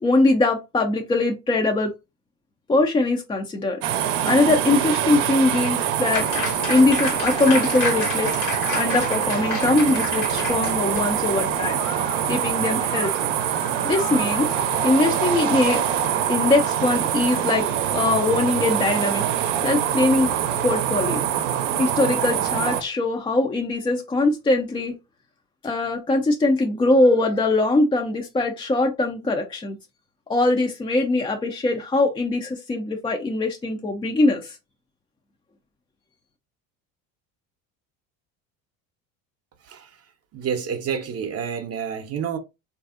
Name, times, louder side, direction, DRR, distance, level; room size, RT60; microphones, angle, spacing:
voice 1, 0.0-1.9 2.7-3.8 4.2-6.3 6.7-8.3 8.7-11.8 12.3-13.1 13.8-14.6 14.8-15.8 16.3-19.3 19.6-20.3 20.6-21.2 21.8-24.9 25.6-29.8 30.3-34.6, left 2 dB, 15° left, 0.3 m, -21 dB
sound 1, 3.8-22.8, right 10 dB, 75° right, 0.6 m, -24 dB
Applause, 6.1-12.5, left 4 dB, 90° left, 1.3 m, -30 dB
Musical instrument, 10.5-16.1, left 5 dB, 70° left, 1.2 m, -37 dB
voice 2, 40.3-42.4, right 7 dB, 35° right, 0.6 m, -29 dB
3.2 x 2.6 x 2.4 m
hypercardioid pair, 75°, 42 cm